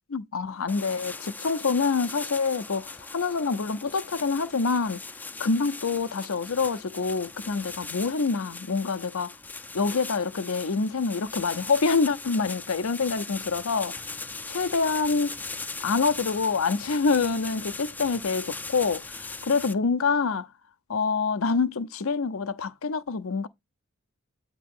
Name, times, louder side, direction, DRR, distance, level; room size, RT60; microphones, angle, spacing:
voice 1, 0.1-5.0 5.4-9.3 9.7-14.0 14.5-15.4 15.8-20.5 20.9-23.5, left 4 dB, 70° left, 0.7 m, -26 dB
sound 1, 0.7-19.7, left 3 dB, 10° left, 0.4 m, -39 dB
8.6 x 3.0 x 5.3 m
head